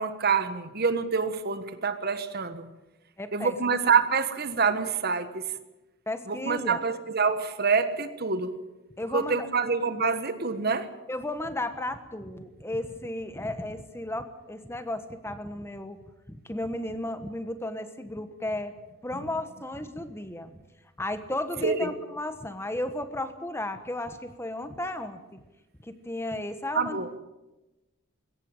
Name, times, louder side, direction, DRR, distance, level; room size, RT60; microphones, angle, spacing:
voice 1, 0.0-2.7 3.3-5.4 6.3-8.6 9.1-10.9 21.6-21.9 26.7-27.1, right 5 dB, 50° right, 11 dB, 1.5 m, -26 dB
voice 2, 3.2-3.5 6.1-6.8 9.0-9.5 11.1-16.0 16.3-18.7 19.0-20.6 21.0-25.4 25.8-27.0, left 1 dB, 10° left, 10 dB, 1.3 m, -34 dB
21.5 x 18.0 x 9.0 m, 1.0 s
head